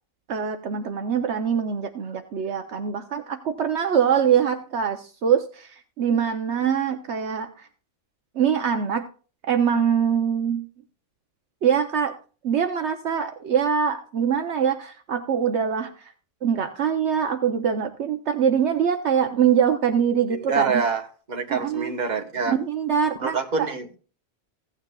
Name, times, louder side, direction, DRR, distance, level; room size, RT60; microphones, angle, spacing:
voice 1, 0.3-7.7 8.3-9.0 9.4-10.7 11.6-12.1 12.4-16.1 16.4-20.8 21.5-21.9 22.5-23.7, right 7 dB, 70° right, 1.0 m, -23 dB
voice 2, 20.3-21.0 21.3-22.6 23.2-24.0, right 4 dB, 40° right, 1.3 m, -26 dB
16.0 x 8.9 x 2.3 m
omnidirectional pair, 1.3 m